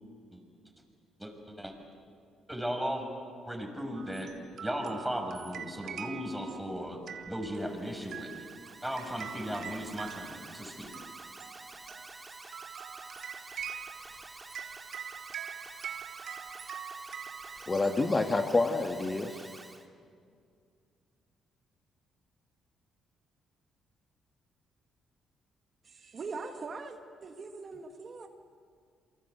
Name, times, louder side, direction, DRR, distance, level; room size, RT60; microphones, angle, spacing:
voice 1, 1.2-1.7 2.5-3.1 3.5-4.3 4.6-7.0 7.3-8.3 8.8-10.9, equal, 5° right, 3 dB, 5.8 m, -36 dB
sound 1, 3.9-18.7, right 8 dB, 65° right, 1.7 m, -44 dB
Alarm, 7.5-19.9, right 2 dB, 20° right, 2.4 m, -49 dB
voice 2, 17.7-19.5, left 3 dB, 25° left, 5 dB, 1.7 m, -28 dB
voice 3, 25.8-28.3, right 4 dB, 45° right, 5 dB, 1.8 m, -42 dB
28.5 x 24.0 x 8.1 m, 2.2 s
cardioid pair, 90°, 0 cm